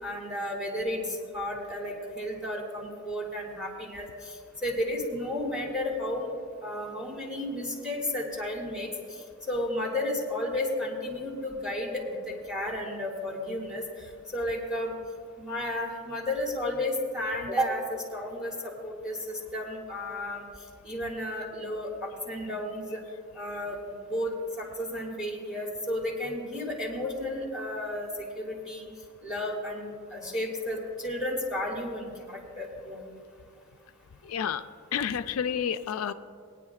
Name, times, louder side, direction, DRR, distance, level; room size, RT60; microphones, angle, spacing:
voice 1, 0.0-4.4 4.6-6.3 6.6-8.9 9.5-14.9 15.4-20.4 20.8-23.0 23.4-23.8 24.1-28.9 29.2-33.0, left 1 dB, 5° right, -2 dB, 2.0 m, -33 dB
voice 2, 34.3-34.6 34.9-36.1, left 8 dB, 80° left, 10 dB, 0.4 m, -29 dB
21.0 x 9.8 x 2.4 m, 2.4 s
head